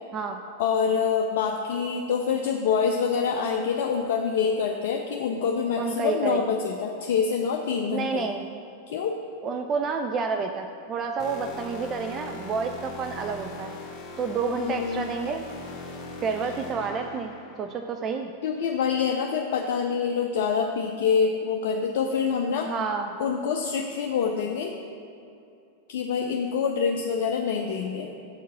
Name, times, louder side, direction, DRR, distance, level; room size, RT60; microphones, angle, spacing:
voice 1, 0.6-8.3 8.9-9.2 14.5-15.1 18.4-22.7 23.2-24.8 25.9-28.1, left 6 dB, 55° left, 3 dB, 0.4 m, -26 dB
voice 2, 5.8-6.4 7.9-8.4 9.4-13.7 14.2-15.4 16.2-17.3 17.6-18.3 22.7-23.1, right 5 dB, 30° right, 5 dB, 0.4 m, -29 dB
sound 1, 11.2-17.7, left 2 dB, 35° left, 1.2 m, -40 dB
7.0 x 4.6 x 6.9 m, 2.7 s
figure-of-eight pair, 90°, 0 cm